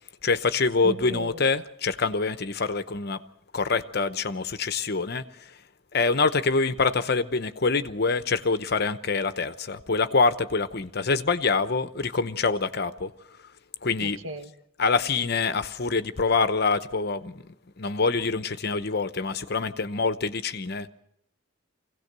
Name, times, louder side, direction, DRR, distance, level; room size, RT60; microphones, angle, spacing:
voice 1, 0.2-3.2 3.5-5.6 5.9-13.1 13.4-13.5 13.8-14.2 14.8-20.9, left 4 dB, 50° left, 0.8 m, -25 dB
voice 2, 0.8-1.4 14.0-14.5, right 2 dB, 75° right, 1.7 m, -36 dB
25.0 x 17.0 x 6.7 m
head